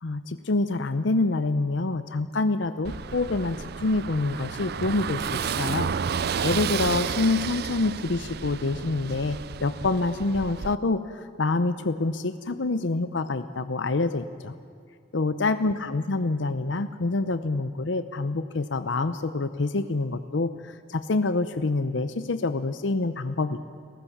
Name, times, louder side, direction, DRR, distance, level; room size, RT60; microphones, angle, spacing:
voice 1, 0.0-5.9 6.4-14.5 15.1-23.6, left 3 dB, 75° left, 11 dB, 0.7 m, -26 dB
Car passing by / Engine, 2.8-10.7, right 6 dB, 55° right, 0.4 m, -31 dB
29.5 x 15.5 x 7.2 m, 2.5 s
head